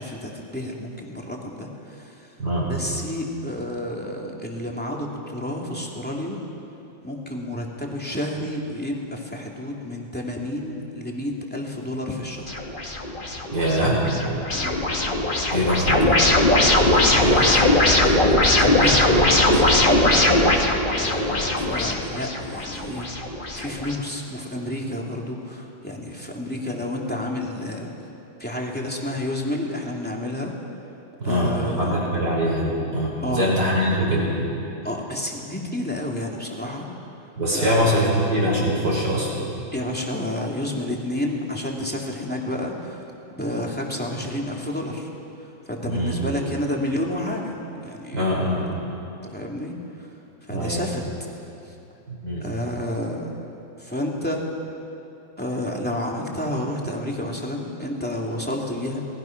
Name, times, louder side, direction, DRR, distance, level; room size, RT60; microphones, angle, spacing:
voice 1, 0.0-2.3 2.6-6.4 7.0-12.5 14.5-14.8 16.8-20.7 20.9-23.1 23.5-27.9 28.4-30.5 31.2-32.0 33.2-33.5 34.8-36.9 37.5-38.0 39.7-43.0 43.3-45.1 45.7-48.7 49.2-49.8 50.5-51.1 52.4-53.3 53.8-54.4 55.4-59.0, left 1 dB, 5° left, -2 dB, 2.7 m, -30 dB
voice 2, 2.4-2.7 13.5-14.1 15.5-16.1 31.2-34.3 37.4-39.3 45.8-46.2 48.1-48.7 50.5-50.8 52.1-52.5, equal, 55° right, -4 dB, 6.5 m, -23 dB
sound 1, 12.5-24.0, left 1 dB, 25° left, 1.9 m, -20 dB
28.5 x 20.0 x 6.0 m, 2.8 s
omnidirectional pair, 2.2 m